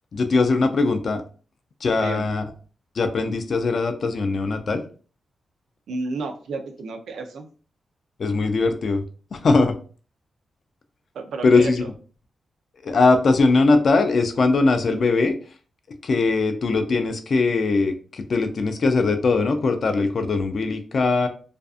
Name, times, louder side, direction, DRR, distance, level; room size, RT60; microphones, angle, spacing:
voice 1, 0.1-1.2 1.8-2.5 3.0-4.8 8.2-9.0 9.3-9.7 11.4-11.8 12.8-15.3 16.0-21.3, left 3 dB, 55° left, 7 dB, 0.4 m, -20 dB
voice 2, 5.9-7.5 11.1-11.9, right 3 dB, 80° right, 5 dB, 0.5 m, -32 dB
2.5 x 2.4 x 2.3 m, 0.39 s
cardioid pair, 100°, 0 cm